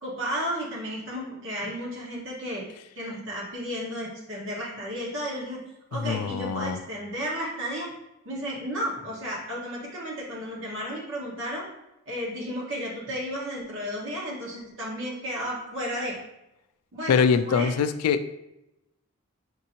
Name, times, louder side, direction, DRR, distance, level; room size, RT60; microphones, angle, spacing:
voice 1, 0.0-2.6 2.9-5.6 5.9-7.9 8.2-11.7 12.1-16.2 16.9-17.7, equal, 60° right, -4 dB, 1.3 m, -33 dB
voice 2, 5.9-6.8 17.1-18.3, left 6 dB, 85° left, 12 dB, 0.3 m, -23 dB
5.9 x 2.8 x 2.7 m, 0.90 s
head